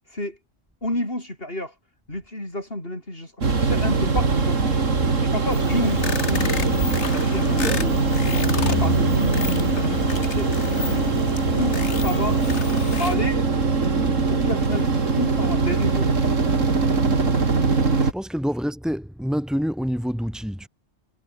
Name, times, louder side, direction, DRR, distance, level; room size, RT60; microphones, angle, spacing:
voice 1, 0.8-1.7 2.1-4.8 5.3-11.2 11.5-12.5 13.0-13.5 14.3-16.1, left 1 dB, 50° left, 8.2 m, -31 dB
sound 1, 3.4-18.1, right 4 dB, 85° right, 2.9 m, -22 dB
sound 2, 5.5-13.2, left 6 dB, 65° left, 1.8 m, -30 dB
voice 2, 18.0-20.7, equal, ahead, 4.3 m, -27 dB
omnidirectional pair, 1.3 m